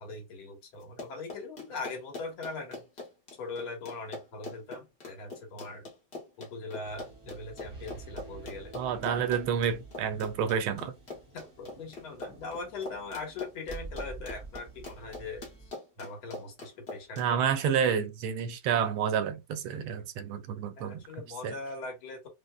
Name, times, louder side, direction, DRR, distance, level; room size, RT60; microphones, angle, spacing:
voice 1, 0.0-2.8 3.4-5.9 6.4-8.8 11.3-15.7 16.0-17.5 20.8-22.3, left 3 dB, 80° left, 2.0 m, -41 dB
Run, 0.8-17.3, left 3 dB, 45° left, 0.8 m, -43 dB
sound 1, 6.8-15.7, right 3 dB, 25° right, 0.7 m, -48 dB
voice 2, 8.7-10.9 17.2-21.0 21.4-21.5, right 7 dB, 85° right, 1.4 m, -29 dB
5.0 x 2.0 x 2.2 m
omnidirectional pair, 2.3 m